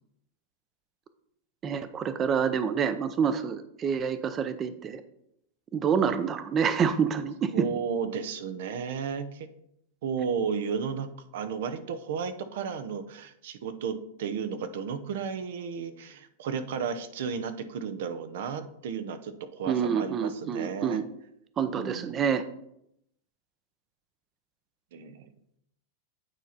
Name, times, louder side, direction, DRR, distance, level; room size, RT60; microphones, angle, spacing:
voice 1, 1.6-5.0 5.7-7.7 19.7-21.1 21.6-22.4, right 7 dB, 30° right, 11 dB, 0.6 m, -27 dB
voice 2, 7.5-9.5 10.0-21.0 21.6-22.3 24.9-25.3, right 6 dB, 70° right, 10 dB, 0.8 m, -33 dB
9.0 x 4.4 x 4.1 m, 0.76 s
hypercardioid pair, 120°, 0 cm